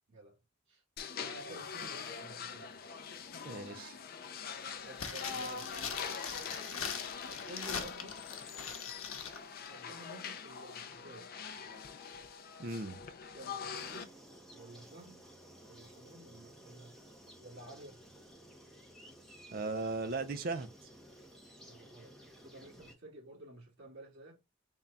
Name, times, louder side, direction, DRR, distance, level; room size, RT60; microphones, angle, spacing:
voice 1, 0.1-0.4 0.7-0.8 1.2-2.7 4.8-5.7 7.3-8.3 9.6-11.3 13.3-14.2 14.5-15.3 15.7-17.0 17.4-18.0 21.6-24.4, right 1 dB, 65° right, 1.9 m, -52 dB
sound 1, 1.0-14.0, left 6 dB, 45° left, 0.4 m, -44 dB
voice 2, 3.4-4.0 12.6-13.0 19.5-20.7, right 3 dB, 45° right, 0.5 m, -37 dB
sound 2, 4.9-9.4 9.7-9.8, left 6 dB, 85° left, 0.8 m, -41 dB
sound 3, 13.7-22.9, right 1 dB, ahead, 0.7 m, -56 dB
3.7 x 2.2 x 4.0 m
head